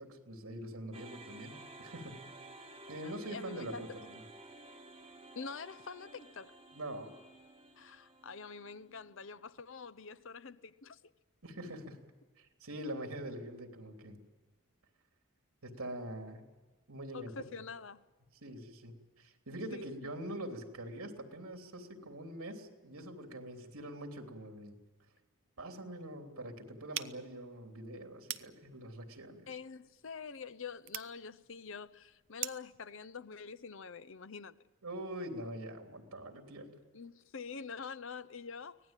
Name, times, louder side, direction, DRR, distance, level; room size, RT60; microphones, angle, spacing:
voice 1, 0.0-2.3 2.9-4.2 6.7-7.1 11.4-12.0 12.4-14.2 15.6-16.5 16.9-17.3 18.4-24.8 25.6-29.5 34.8-36.8, right 1 dB, 85° right, 3.2 m, -44 dB
sound 1, 0.9-9.2, right 2 dB, 25° right, 2.1 m, -54 dB
voice 2, 3.3-4.1 5.4-6.6 7.8-11.0 17.1-18.0 19.7-20.2 29.5-34.6 36.9-38.8, left 5 dB, 60° left, 0.7 m, -46 dB
sound 2, 26.9-32.8, right 13 dB, 55° right, 0.8 m, -46 dB
24.5 x 18.0 x 9.0 m
head